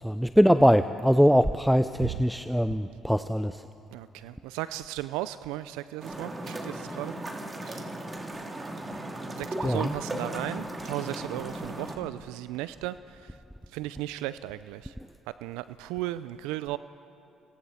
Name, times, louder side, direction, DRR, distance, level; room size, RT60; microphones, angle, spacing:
voice 1, 0.0-3.7 9.6-9.9, equal, ahead, 11 dB, 0.6 m, -22 dB
voice 2, 3.9-7.2 7.6-7.9 9.3-15.0 15.3-16.8, right 15 dB, 80° right, 15 dB, 0.4 m, -36 dB
sound 1, 6.0-12.0, right 1 dB, 30° right, 2.9 m, -36 dB
29.0 x 26.5 x 4.3 m, 2.9 s
hypercardioid pair, 55°, 0 cm